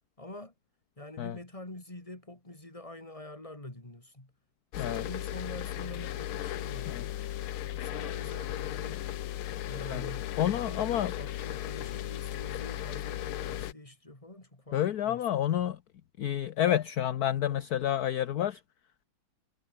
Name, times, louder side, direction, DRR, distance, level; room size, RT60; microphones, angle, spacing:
voice 1, 0.2-0.5 1.0-4.3 4.8-7.0 7.8-9.1 9.6-15.3, left 1 dB, 15° left, 3.6 m, -46 dB
sound 1, 4.7-13.7, left 13 dB, 80° left, 1.8 m, -36 dB
voice 2, 10.4-11.1 14.7-15.8 16.2-18.6, left 11 dB, 60° left, 1.2 m, -29 dB
omnidirectional pair, 2.3 m